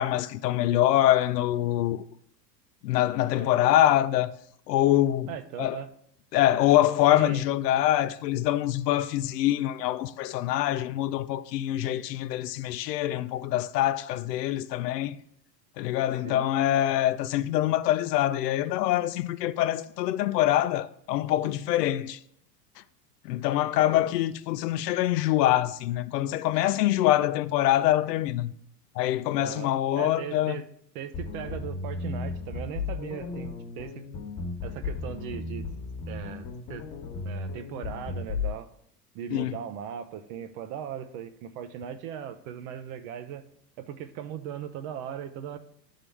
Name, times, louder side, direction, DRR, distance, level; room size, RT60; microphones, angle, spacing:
voice 1, 0.0-2.0 2.8-4.3 4.7-5.3 5.6-5.8 6.3-15.2 15.8-22.2 23.2-28.5 29.0-30.6 39.3-39.6, left 13 dB, 80° left, 0.6 m, -25 dB
voice 2, 3.3-3.7 5.3-5.9 7.1-7.5 16.2-16.5 29.4-30.7 30.9-34.0 34.6-35.6 36.1-36.8 37.2-38.7 39.1-43.4 43.8-45.6, right 9 dB, 60° right, 0.8 m, -38 dB
sound 1, 31.1-38.5, left 4 dB, 40° left, 1.4 m, -35 dB
11.0 x 3.7 x 3.4 m
hypercardioid pair, 105°, 48 cm